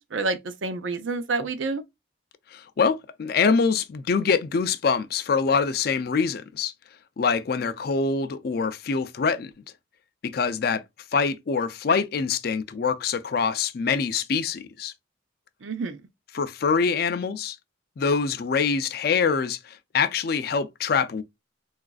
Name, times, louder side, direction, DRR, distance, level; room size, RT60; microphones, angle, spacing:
voice 1, 0.0-1.8 15.6-16.0, right 3 dB, 75° right, 0.6 m, -28 dB
voice 2, 2.5-6.7 7.2-9.5 10.2-10.8 11.1-14.9 16.3-17.6 18.0-21.2, left 5 dB, 50° left, 0.4 m, -24 dB
4.0 x 2.4 x 2.3 m
head